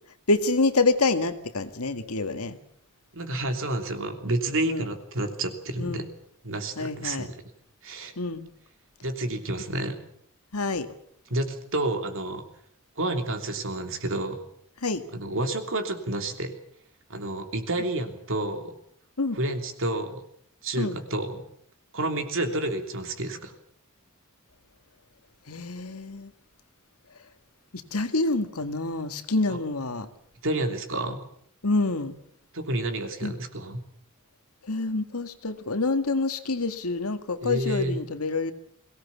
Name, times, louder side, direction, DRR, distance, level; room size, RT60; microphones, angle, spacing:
voice 1, 0.3-2.6 4.7-4.9 5.8-6.1 6.8-7.3 8.2-8.5 10.5-10.9 14.8-15.0 19.2-19.4 20.8-21.0 25.5-26.3 27.7-30.1 31.6-32.2 33.2-33.3 34.6-38.5, left 3 dB, 70° left, 9 dB, 1.9 m, -27 dB
voice 2, 3.1-6.0 6.4-7.4 7.8-8.1 9.0-10.0 11.3-12.4 13.0-14.4 15.1-16.5 17.1-18.7 19.4-20.2 20.6-21.4 21.9-23.5 29.5-29.6 30.4-31.2 32.5-33.8 37.4-38.0, right 1 dB, 60° right, 6 dB, 3.1 m, -29 dB
22.5 x 18.0 x 8.4 m, 0.68 s
head